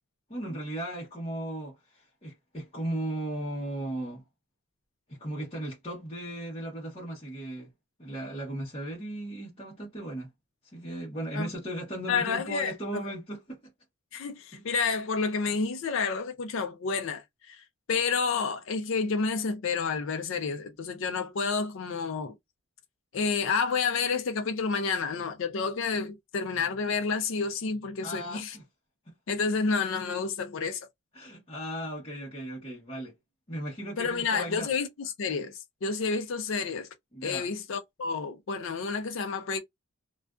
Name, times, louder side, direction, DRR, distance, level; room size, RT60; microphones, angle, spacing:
voice 1, 0.3-4.2 5.1-7.7 8.0-10.3 10.7-13.6 14.5-14.6 28.0-28.6 31.1-33.1 33.5-34.7 37.1-37.5, right 1 dB, 25° left, 0.8 m, -36 dB
voice 2, 12.1-13.0 14.1-22.3 23.1-28.6 29.3-30.9 34.0-36.9 37.2-39.6, left 5 dB, 65° left, 0.4 m, -30 dB
2.4 x 2.2 x 2.4 m
head